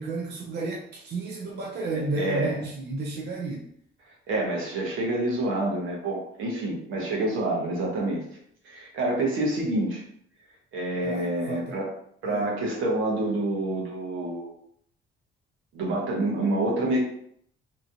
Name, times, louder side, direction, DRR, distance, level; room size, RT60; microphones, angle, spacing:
voice 1, 0.0-3.7 11.0-11.8 12.3-12.5, right 2 dB, 55° right, -2 dB, 0.6 m, -32 dB
voice 2, 1.9-2.6 4.3-8.2 8.6-10.0 10.7-11.9 12.2-14.5 15.7-17.0, right 2 dB, 85° right, -2 dB, 1.0 m, -27 dB
2.9 x 2.4 x 2.7 m, 0.66 s
cardioid pair, 90°, 20 cm